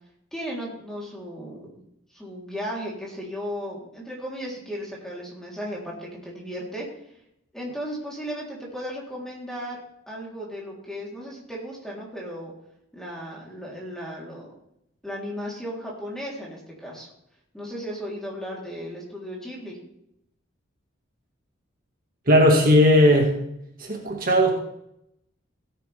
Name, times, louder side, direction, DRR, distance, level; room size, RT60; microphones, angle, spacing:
voice 1, 0.3-1.8 2.1-6.9 7.5-9.8 10.1-12.5 12.9-14.5 15.0-17.1 17.5-19.8, equal, 5° left, -4 dB, 3.6 m, -35 dB
voice 2, 22.3-23.3 23.8-24.5, equal, 45° right, 0 dB, 2.0 m, -17 dB
16.5 x 9.8 x 3.5 m, 0.77 s
head